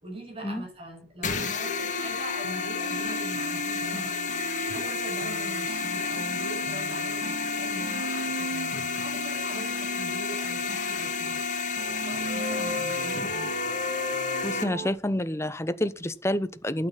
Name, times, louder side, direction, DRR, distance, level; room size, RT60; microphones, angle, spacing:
voice 1, 0.0-4.2 4.7-11.4 11.9-13.5, right 1 dB, 35° right, 6.6 m, -41 dB
sound 1, 1.2-14.6, left 5 dB, 45° left, 1.8 m, -31 dB
sound 2, 1.6-14.9, right 1 dB, 60° right, 1.5 m, -36 dB
voice 2, 14.4-16.9, left 1 dB, 15° left, 0.9 m, -28 dB
12.5 x 9.1 x 5.8 m
head